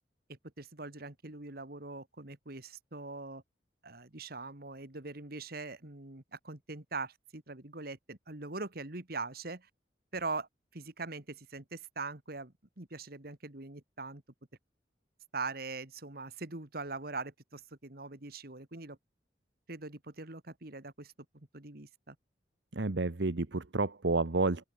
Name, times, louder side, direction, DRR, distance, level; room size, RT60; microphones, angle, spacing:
voice 1, 0.3-3.4 3.8-9.7 10.1-14.2 15.3-19.0 19.7-22.2, right 3 dB, 55° right, 2.3 m, -42 dB
voice 2, 22.7-24.6, right 3 dB, 75° right, 1.0 m, -30 dB
open air
head